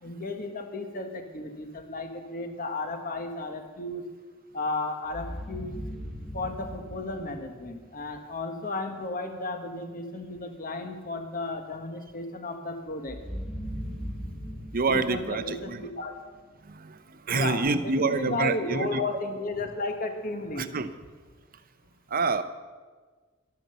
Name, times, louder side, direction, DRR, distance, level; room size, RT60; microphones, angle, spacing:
voice 1, 0.0-4.1 4.5-5.8 6.3-13.2 14.9-16.2 17.3-20.7, left 2 dB, 40° left, 5 dB, 1.3 m, -34 dB
sound 1, 5.1-8.1 13.1-16.3, equal, ahead, 1.0 m, -39 dB
voice 2, 14.7-15.8 16.7-17.0 17.3-19.0 20.6-20.9 22.1-22.4, right 4 dB, 45° right, 11 dB, 0.7 m, -27 dB
12.0 x 10.0 x 6.8 m, 1.4 s
head